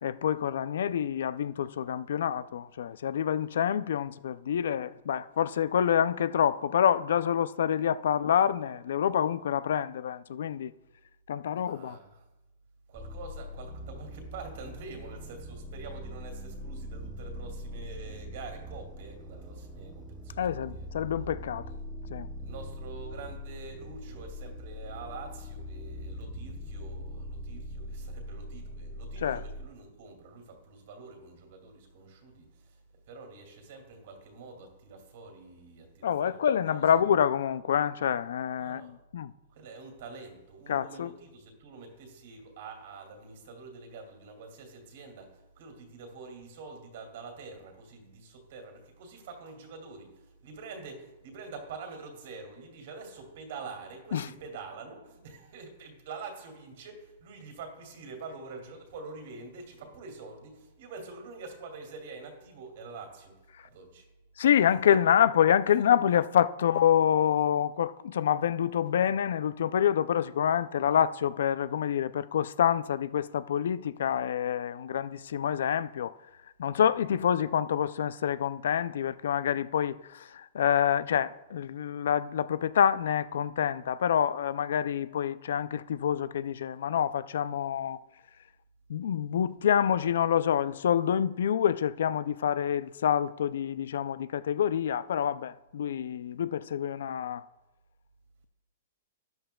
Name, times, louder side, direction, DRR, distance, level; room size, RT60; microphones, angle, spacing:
voice 1, 0.0-10.7 11.3-12.0 20.4-21.6 22.1-22.3 29.2-29.4 36.0-39.3 40.7-41.1 54.1-54.3 64.4-76.1 76.6-88.0 88.9-97.4, left 9 dB, 70° left, 0.3 m, -27 dB
voice 2, 11.6-12.2 12.9-20.9 21.7-21.8 22.4-37.0 38.6-38.9 39.5-63.4 63.6-64.1 64.9-65.1, right 4 dB, 50° right, 2.3 m, -46 dB
sound 1, 12.9-29.7, equal, 5° right, 0.7 m, -41 dB
13.0 x 10.5 x 2.2 m
hypercardioid pair, 170°, 0 cm